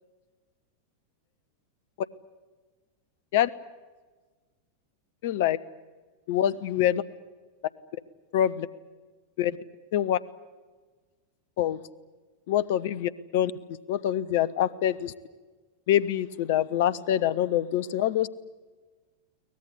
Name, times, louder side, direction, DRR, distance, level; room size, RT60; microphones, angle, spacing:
voice 1, 5.2-5.6 6.3-7.0 8.3-8.7 9.4-9.6 9.9-10.2 11.6-11.8 12.5-13.5 13.9-15.1 15.9-18.3, left 11 dB, 50° left, 18 dB, 0.9 m, -25 dB
23.5 x 19.0 x 9.7 m, 1.3 s
figure-of-eight pair, 90°, 0 cm